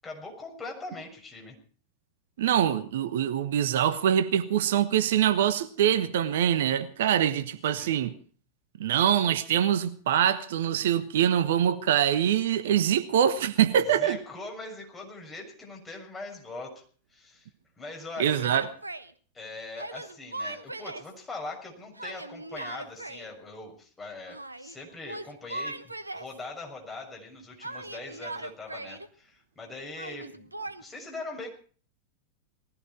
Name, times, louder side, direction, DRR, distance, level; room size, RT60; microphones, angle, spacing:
voice 1, 0.0-1.6 7.8-8.0 14.0-16.8 17.1-17.5 17.8-18.4 19.3-31.5, left 2 dB, 15° left, 6.6 m, -41 dB
voice 2, 2.4-8.1 8.8-14.2 18.2-18.6, right 9 dB, 55° right, 1.2 m, -24 dB
Yell, 18.1-19.1 19.8-21.1 22.0-23.3 24.3-24.8 25.1-26.4 27.6-29.1 30.0-30.8, right 2 dB, 80° right, 1.1 m, -39 dB
20.0 x 15.5 x 4.6 m
figure-of-eight pair, 90°, 0 cm